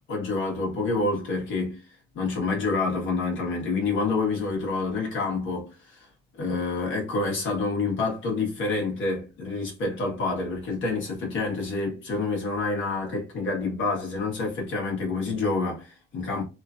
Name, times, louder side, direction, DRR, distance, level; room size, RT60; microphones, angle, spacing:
voice 1, 0.1-1.8 2.1-6.1 6.4-16.5, left 3 dB, 75° left, 1.4 m, -28 dB
3.0 x 2.5 x 2.4 m
cardioid pair, 90°, 20 cm